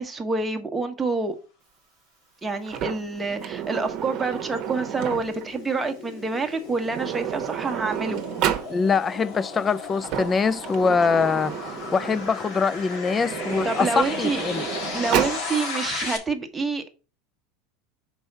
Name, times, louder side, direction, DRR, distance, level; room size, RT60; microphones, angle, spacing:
voice 1, 0.0-1.4 2.4-8.2 13.6-14.4 14.9-16.9, right 4 dB, 15° right, 1.2 m, -27 dB
Sliding door, 2.7-5.5 6.5-6.6 6.8-8.7 9.8-12.4 13.1-15.4, right 10 dB, 50° right, 1.0 m, -31 dB
sound 1, 3.0-16.2, left 3 dB, 65° left, 1.8 m, -36 dB
voice 2, 8.7-11.5 11.9-14.7, left 5 dB, 25° left, 0.4 m, -23 dB
5.4 x 4.6 x 5.3 m
supercardioid pair, 115°, 0 cm